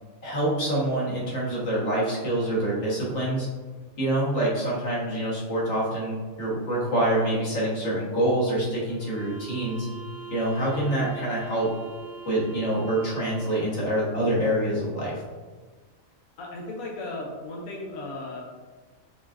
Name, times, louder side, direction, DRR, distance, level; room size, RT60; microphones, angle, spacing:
voice 1, 0.2-3.5 4.0-9.9 10.3-11.7 12.2-15.2, right 1 dB, 55° left, -7 dB, 1.5 m, -26 dB
sound 1, 8.9-13.8, right 6 dB, 50° right, 1.1 m, -42 dB
voice 2, 16.4-18.4, left 2 dB, 85° left, -3 dB, 1.1 m, -36 dB
5.3 x 2.5 x 2.4 m, 1.4 s
omnidirectional pair, 1.4 m